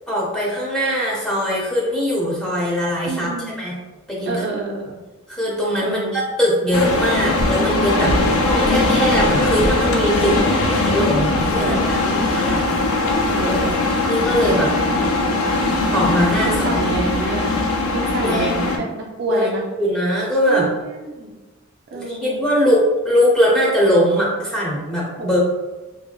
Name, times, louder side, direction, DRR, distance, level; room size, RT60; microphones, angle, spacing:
voice 1, 0.1-3.3 3.6-3.7 4.1-4.5 5.3-8.2 8.4-12.8 13.5-13.6 14.1-14.8 15.9-16.8 18.2-18.5 19.3-19.5 19.8-20.7 21.9-25.4, equal, 5° left, -5 dB, 0.6 m, -21 dB
voice 2, 3.1-3.6 4.3-4.8 5.8-6.1 7.9-8.2 8.6-8.9 10.1-10.4 11.6-12.3 13.3-13.8 15.0-15.5 16.4-17.5 17.9-19.6 20.5-21.3 21.9-22.4 25.2-25.4, right 3 dB, 50° right, 1 dB, 0.3 m, -28 dB
sound 1, 6.7-18.8, left 2 dB, 75° left, 0.4 m, -20 dB
3.0 x 2.5 x 2.2 m, 1.2 s
head